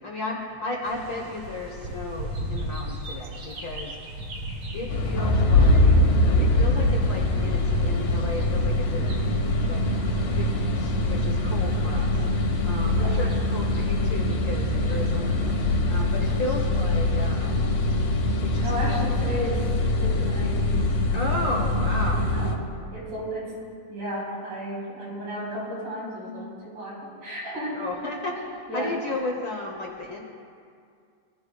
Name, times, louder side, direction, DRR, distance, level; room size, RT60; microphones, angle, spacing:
voice 1, 0.0-4.0 4.7-6.0 6.4-9.2 9.6-10.1 10.3-15.6 15.9-17.7 18.4-19.1 21.1-22.4 27.7-30.2, left 2 dB, 50° left, -1 dB, 1.6 m, -34 dB
sound 1, 0.8-16.6, right 1 dB, 55° right, 3.4 m, -40 dB
sound 2, 4.9-22.6, left 1 dB, 75° left, 2.7 m, -23 dB
voice 2, 18.6-19.7 20.0-20.9 22.0-22.6 22.9-23.6 23.9-27.8 28.7-28.9, equal, 75° right, -5 dB, 6.0 m, -33 dB
24.0 x 15.5 x 2.4 m, 2.3 s
omnidirectional pair, 3.5 m